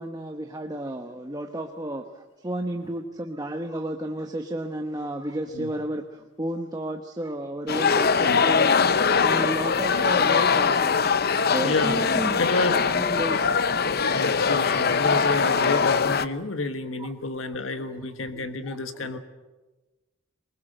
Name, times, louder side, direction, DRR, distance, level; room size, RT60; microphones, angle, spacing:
voice 1, 0.0-8.7 9.1-11.0 11.4-13.5 17.0-17.1 17.8-17.9 18.3-19.2, right 1 dB, 20° right, 5 dB, 1.0 m, -32 dB
sound 1, 7.7-16.3, left 5 dB, 55° left, 0.8 m, -22 dB
voice 2, 11.6-12.8 13.3-13.4 14.1-19.2, left 3 dB, 85° left, 8 dB, 1.4 m, -29 dB
23.5 x 21.5 x 7.9 m, 1.2 s
head